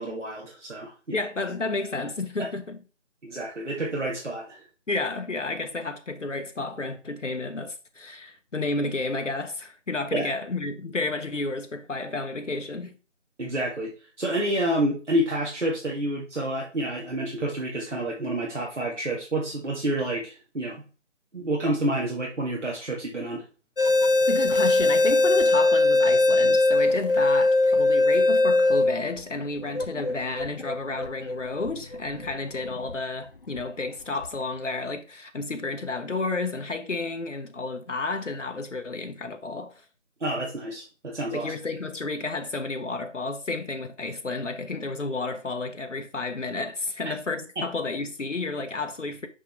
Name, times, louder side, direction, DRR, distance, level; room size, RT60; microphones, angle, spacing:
voice 1, 0.0-1.2 3.2-4.7 10.1-10.3 13.4-13.9 14.2-20.8 21.3-23.4 40.2-41.5 47.0-47.1 47.6-47.7, right 1 dB, 75° right, 2.0 m, -29 dB
voice 2, 1.1-2.8 4.9-12.9 24.3-39.8 41.3-49.3, left 3 dB, 80° left, 1.0 m, -31 dB
sound 1, 23.8-33.0 33.5-33.6 34.2-34.4, left 2 dB, 50° left, 0.7 m, -21 dB
6.4 x 5.4 x 3.3 m
figure-of-eight pair, 160°, 37 cm